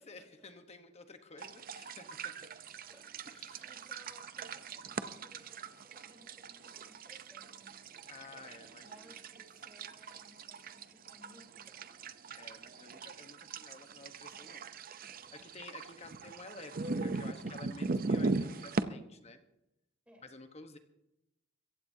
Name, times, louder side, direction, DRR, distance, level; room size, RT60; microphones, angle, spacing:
voice 1, 0.0-2.5 3.3-3.7 8.1-9.0 12.3-14.7 15.0-19.4 20.2-20.8, left 3 dB, 35° left, 7 dB, 1.1 m, -52 dB
sound 1, 1.4-18.8, right 3 dB, 45° right, 0.6 m, -40 dB
voice 2, 2.8-7.8 8.8-11.9 20.1-20.3, equal, 5° right, 0 dB, 3.6 m, -62 dB
24.0 x 15.5 x 2.8 m, 0.86 s
head